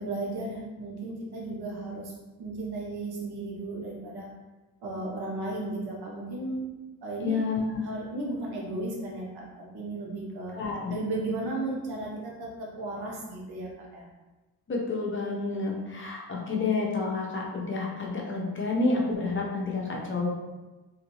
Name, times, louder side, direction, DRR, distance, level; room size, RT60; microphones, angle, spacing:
voice 1, 0.0-2.1 2.4-4.3 4.8-6.6 7.0-7.4 7.8-10.6 10.9-14.1, right 2 dB, 75° right, -2 dB, 1.0 m, -35 dB
voice 2, 7.2-7.8 10.5-10.9 14.7-20.3, left 3 dB, 30° left, -1 dB, 0.7 m, -29 dB
2.7 x 2.5 x 3.0 m, 1.2 s
cardioid pair, 100°, 38 cm